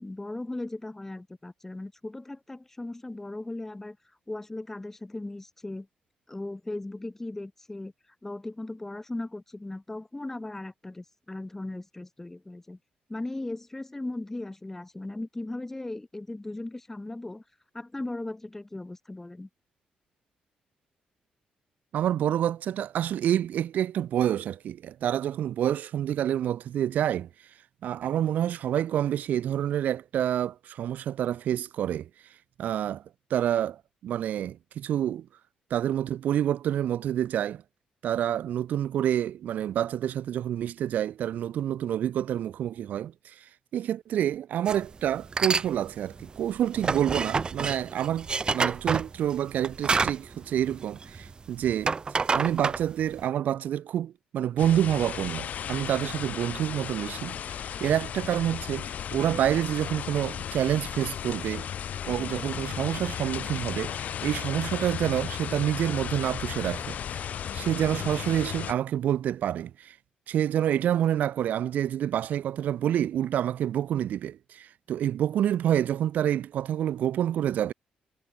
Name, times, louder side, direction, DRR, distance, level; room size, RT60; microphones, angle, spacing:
voice 1, 0.0-4.0 4.3-5.9 6.3-7.9 8.2-12.8 13.1-17.4 17.7-19.5, left 2 dB, 10° left, 6.7 m, -37 dB
voice 2, 21.9-27.3 27.8-32.1 32.6-33.0 33.3-35.2 35.7-37.6 38.0-43.4 43.7-48.3 48.5-51.9 52.3-61.7 62.0-67.3 67.5-69.9 70.3-77.7, right 10 dB, 70° right, 1.4 m, -28 dB
sound 1, 44.7-44.8 45.2-45.7 46.0-51.3 51.6-53.2, right 4 dB, 30° right, 2.9 m, -28 dB
sound 2, 54.6-68.7, left 9 dB, 60° left, 5.6 m, -35 dB
cardioid pair, 120°, 3 cm